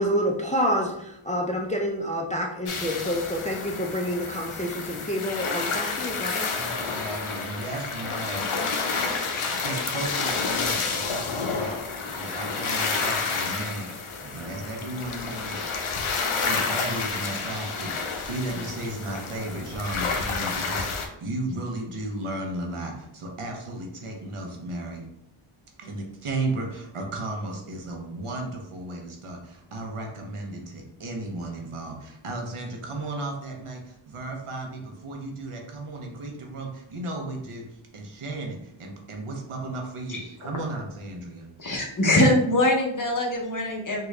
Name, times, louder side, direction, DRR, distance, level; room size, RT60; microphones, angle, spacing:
voice 1, 0.0-6.5, equal, 15° left, -1 dB, 0.4 m, -28 dB
sound 1, 2.7-21.1, left 4 dB, 75° left, 0.6 m, -30 dB
voice 2, 6.5-8.5 9.4-15.7 16.4-25.0 25.8-37.6 37.9-41.5, right 2 dB, 85° right, 1 dB, 0.8 m, -34 dB
voice 3, 41.6-44.1, left 1 dB, 40° left, -1 dB, 0.8 m, -23 dB
3.7 x 2.3 x 3.1 m, 0.79 s
wide cardioid pair, 70°, 50 cm